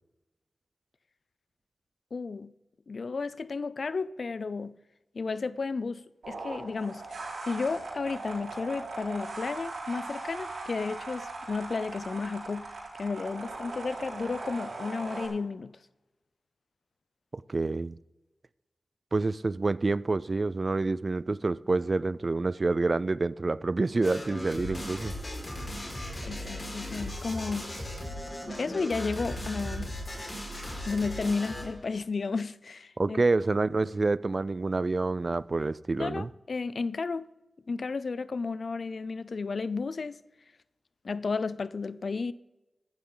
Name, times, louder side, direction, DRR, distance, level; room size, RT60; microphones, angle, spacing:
voice 1, 2.1-2.5 2.9-4.8 5.1-15.8 26.2-27.7 28.6-29.9 30.9-33.2 36.0-37.3 37.7-40.2 41.0-42.3, left 4 dB, 70° left, 0.5 m, -33 dB
sound 1, 6.2-15.3, right 3 dB, 90° right, 4.8 m, -39 dB
voice 2, 17.3-18.0 19.1-25.2 33.0-36.3, right 3 dB, 50° right, 0.4 m, -28 dB
sound 2, 24.0-31.8, equal, 35° left, 5.1 m, -37 dB
14.5 x 12.0 x 3.9 m
cardioid pair, 40°, 0 cm